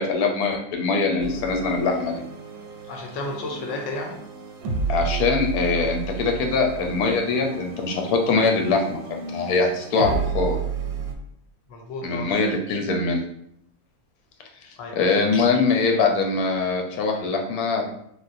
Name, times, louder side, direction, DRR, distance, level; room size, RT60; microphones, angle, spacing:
voice 1, 0.0-2.2 4.9-10.6 12.0-13.2 15.0-17.9, left 4 dB, 85° left, 2 dB, 1.1 m, -22 dB
sound 1, 1.2-11.1, right 5 dB, 90° right, 1.1 m, -32 dB
voice 2, 2.9-4.2 11.7-12.3 14.8-15.1, left 2 dB, 65° left, 2 dB, 0.8 m, -32 dB
3.2 x 2.3 x 2.5 m, 0.71 s
omnidirectional pair, 1.5 m